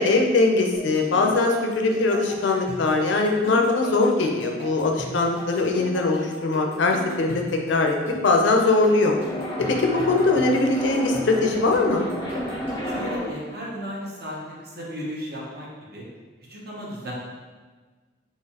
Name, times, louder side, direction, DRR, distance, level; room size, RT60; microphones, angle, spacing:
voice 1, 0.0-7.4 7.7-7.9 8.2-9.2 9.8-12.1, left 3 dB, 75° left, 2 dB, 0.4 m, -21 dB
sound 1, 0.8-13.1, equal, 15° right, 1.2 m, -39 dB
sound 2, 8.7-13.5, left 1 dB, 25° left, 0.5 m, -31 dB
voice 2, 12.8-14.4 14.6-16.0 16.5-17.1, equal, 55° right, -4 dB, 0.8 m, -34 dB
3.8 x 2.8 x 2.8 m, 1.4 s
head